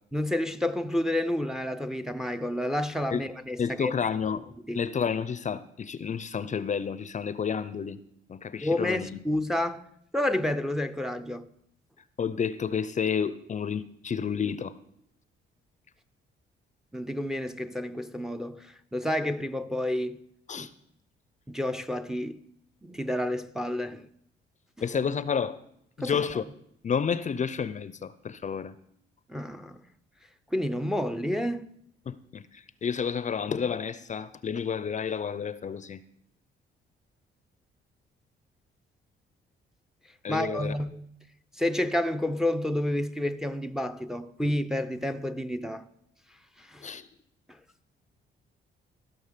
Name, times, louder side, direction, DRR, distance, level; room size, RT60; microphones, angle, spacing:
voice 1, 0.1-3.9 4.7-4.8 8.6-9.9 10.1-11.5 16.9-20.2 20.6-20.7 21.5-22.4 22.8-24.1 26.0-26.3 29.3-29.8 30.5-31.7 40.3-41.1 41.5-45.8 46.6-46.9 47.5-47.6, left 1 dB, ahead, 0.6 m, -30 dB
voice 2, 3.6-4.5 4.8-8.0 8.3-9.1 12.2-14.7 20.5-20.7 24.8-25.6 26.0-26.4 26.8-28.7 32.1-32.4 32.8-36.0 40.2-40.8 46.8-47.1, left 6 dB, 40° left, 0.6 m, -30 dB
14.5 x 6.1 x 6.8 m
cardioid pair, 90°, 20 cm